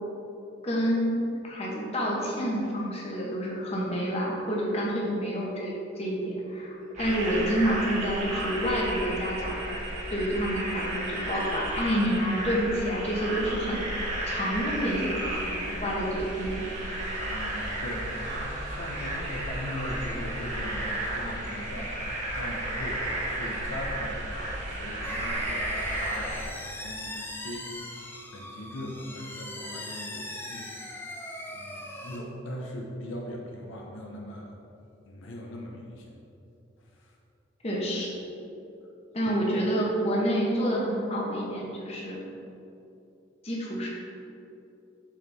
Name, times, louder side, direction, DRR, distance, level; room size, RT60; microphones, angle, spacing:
voice 1, 0.6-1.2 1.4-9.7 10.1-16.6 37.6-38.1 39.1-42.2 43.4-43.9, equal, 30° left, -4 dB, 1.0 m, -28 dB
sound 1, 3.8-4.1 7.1-12.2, right 1 dB, 90° right, 0.8 m, -46 dB
sound 2, 6.9-26.4, right 1 dB, 35° right, 1.1 m, -33 dB
voice 2, 17.2-27.7 28.3-31.1 31.5-34.5 35.0-36.1 37.0-37.1, left 1 dB, 75° left, 0 dB, 0.7 m, -40 dB
sound 3, 25.0-32.2, left 1 dB, 10° left, 0.4 m, -40 dB
7.3 x 4.2 x 3.4 m, 2.8 s
head